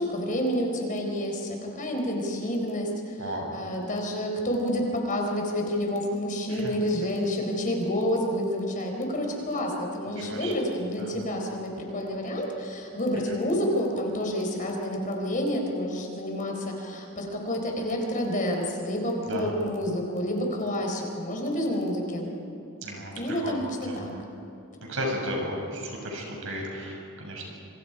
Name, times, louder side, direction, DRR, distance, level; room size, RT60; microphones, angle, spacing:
voice 1, 0.0-22.3 23.2-24.1, equal, 40° left, 1 dB, 4.4 m, -29 dB
voice 2, 3.2-3.5 6.5-6.7 10.2-10.5 11.0-11.1 19.3-19.5 22.8-23.6 23.8-24.0 24.9-27.5, equal, 65° right, 0 dB, 6.9 m, -34 dB
28.0 x 25.0 x 5.0 m, 2.8 s
head